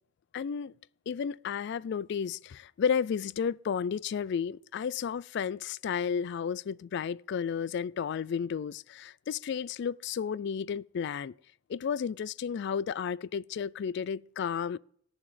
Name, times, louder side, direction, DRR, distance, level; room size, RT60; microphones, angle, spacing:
voice 1, 0.3-0.7 1.1-11.3 11.7-14.8, left 7 dB, 60° left, 0.3 m, -32 dB
17.5 x 7.1 x 3.3 m
head